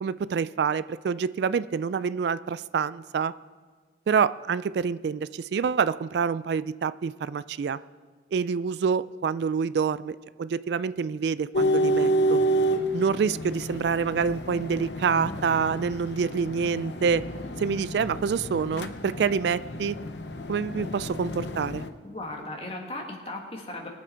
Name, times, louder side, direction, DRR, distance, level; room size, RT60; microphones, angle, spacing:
voice 1, 0.0-3.3 4.1-7.8 8.3-12.4 12.9-17.2 17.6-20.0 20.5-21.8, right 6 dB, 65° right, 16 dB, 0.3 m, -27 dB
sound 1, 11.5-21.9, right 1 dB, 70° left, 0.8 m, -29 dB
voice 2, 22.0-23.9, left 2 dB, 30° left, 1 dB, 1.8 m, -37 dB
22.0 x 7.5 x 4.5 m, 1.5 s
head